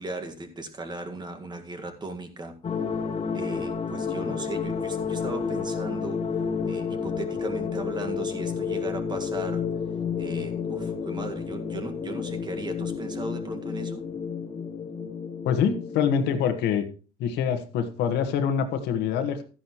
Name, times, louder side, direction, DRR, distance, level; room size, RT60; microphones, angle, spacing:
voice 1, 0.0-2.6 3.3-6.2 6.7-9.7 10.2-14.0, right 2 dB, 25° right, 1.8 m, -37 dB
sound 1, 2.6-16.5, left 6 dB, 35° left, 1.2 m, -31 dB
voice 2, 15.4-16.9 17.2-19.4, left 7 dB, 85° left, 1.5 m, -25 dB
12.5 x 10.5 x 3.1 m
cardioid pair, 110°, 17 cm